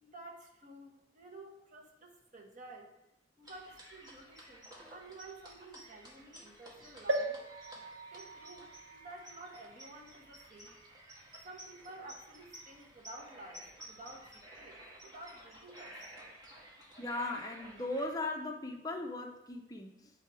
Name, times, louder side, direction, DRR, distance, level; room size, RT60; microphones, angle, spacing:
voice 1, 0.0-2.9 3.4-7.4 8.1-10.8 11.4-16.0, right 2 dB, 40° right, 0 dB, 1.2 m, -52 dB
sound 1, 3.4-18.2, right 1 dB, 20° right, 1.7 m, -53 dB
sound 2, 7.1-10.8 11.4-11.5 11.7-11.8, right 2 dB, 80° right, 0.9 m, -39 dB
voice 2, 17.0-20.1, left 2 dB, 20° left, 3 dB, 0.5 m, -38 dB
9.6 x 3.7 x 4.7 m, 0.89 s
head